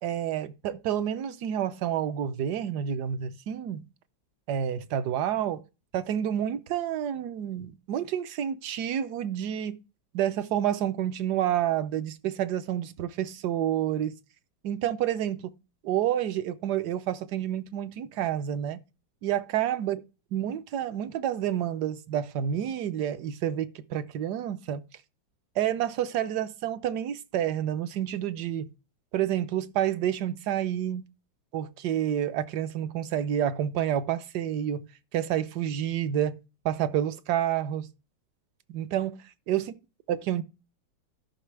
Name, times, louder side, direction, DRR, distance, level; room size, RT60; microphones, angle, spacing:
voice 1, 0.0-3.8 4.5-5.6 5.9-9.8 10.1-14.1 14.6-15.5 15.8-18.8 19.2-20.0 20.3-24.8 25.6-28.7 29.1-31.0 31.5-36.4 36.6-37.9 38.7-39.7 40.1-40.4, right 10 dB, 70° right, 1.1 m, -29 dB
13.0 x 5.8 x 3.3 m
omnidirectional pair, 2.0 m